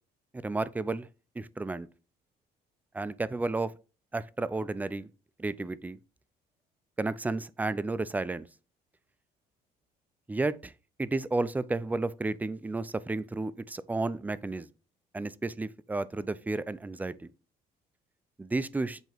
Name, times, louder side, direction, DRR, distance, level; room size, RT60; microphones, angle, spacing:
voice 1, 0.3-1.1 1.4-1.9 2.9-3.7 4.1-5.1 5.4-6.0 7.0-8.5 10.3-10.7 11.0-14.7 15.1-17.3 18.4-19.0, right 3 dB, 10° right, 0.4 m, -32 dB
8.0 x 3.0 x 4.4 m
cardioid pair, 110°, 17 cm